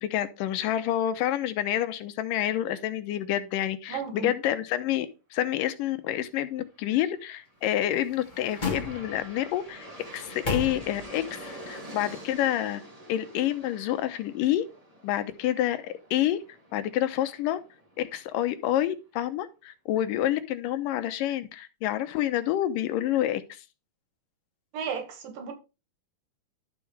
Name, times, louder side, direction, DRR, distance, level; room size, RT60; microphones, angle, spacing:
voice 1, 0.0-9.9 10.1-12.8 13.1-14.6 15.0-16.4 16.7-17.6 18.0-23.6, left 12 dB, 85° left, 2.4 m, -28 dB
voice 2, 3.9-4.3 24.7-25.5, right 7 dB, 85° right, 3.6 m, -34 dB
Aircraft, 7.5-18.5, right 1 dB, 20° right, 1.1 m, -47 dB
sound 1, 7.7-9.4 10.0-11.3 11.6-11.7, left 3 dB, 30° left, 0.8 m, -35 dB
12.0 x 7.1 x 3.3 m
omnidirectional pair, 3.9 m